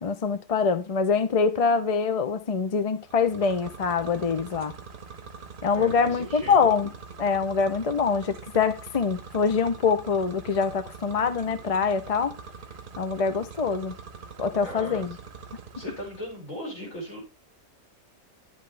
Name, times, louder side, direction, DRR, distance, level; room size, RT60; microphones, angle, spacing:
voice 1, 0.0-4.7 5.6-6.9 7.2-12.3 13.0-14.0 14.4-15.2, left 5 dB, 40° left, 0.5 m, -24 dB
sound 1, 3.0-16.4, right 5 dB, 45° right, 0.9 m, -44 dB
voice 2, 5.7-6.7 14.6-15.1 15.8-17.2, equal, 60° left, 6.1 m, -38 dB
11.0 x 7.9 x 3.3 m
omnidirectional pair, 1.5 m